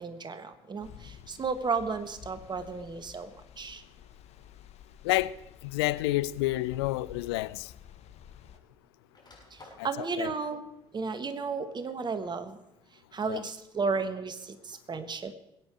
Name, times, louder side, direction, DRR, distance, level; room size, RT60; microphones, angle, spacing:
voice 1, 0.0-3.3 3.6-3.8 9.5-10.7 10.9-12.6 12.9-15.3, right 4 dB, 35° right, 1.5 m, -33 dB
sound 1, 0.8-8.6, left 9 dB, 55° left, 1.1 m, -51 dB
sound 2, 4.3-4.6 5.6-5.7 7.1-7.2 7.5-8.6 8.9-9.9, left 2 dB, 30° left, 6.8 m, -54 dB
voice 2, 5.6-7.7 9.8-9.9 10.2-10.3 13.3-13.4, left 18 dB, 75° left, 0.4 m, -29 dB
21.5 x 8.6 x 4.9 m
hypercardioid pair, 55°, 13 cm